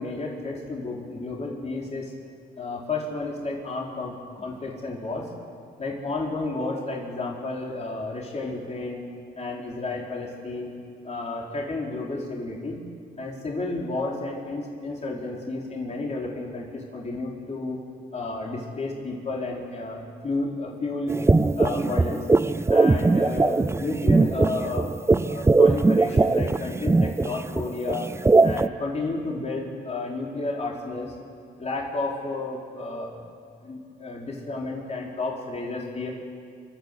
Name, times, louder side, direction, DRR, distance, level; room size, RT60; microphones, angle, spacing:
voice 1, 0.0-2.1 2.6-5.3 5.8-9.0 9.4-10.7 11.0-12.8 13.2-17.8 18.1-21.1 21.5-22.3 22.7-24.9 25.2-28.1 28.4-31.1 31.6-33.2 33.6-36.1, left 3 dB, 35° left, -2 dB, 4.0 m, -32 dB
sound 1, 21.1-28.7, right 3 dB, 15° right, 0.5 m, -20 dB
28.0 x 12.0 x 8.3 m, 2.2 s
cardioid pair, 90°, 20 cm